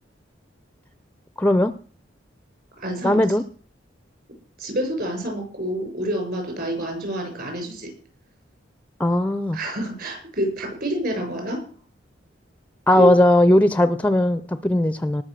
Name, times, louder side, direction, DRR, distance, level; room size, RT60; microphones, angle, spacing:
voice 1, 1.4-1.7 3.0-3.4 9.0-9.6 12.9-15.2, left 1 dB, 10° left, 13 dB, 0.5 m, -18 dB
voice 2, 2.8-3.2 4.6-7.9 9.5-11.6 13.0-13.1, right 1 dB, 50° right, 4 dB, 6.9 m, -27 dB
19.0 x 6.8 x 6.6 m, 0.43 s
head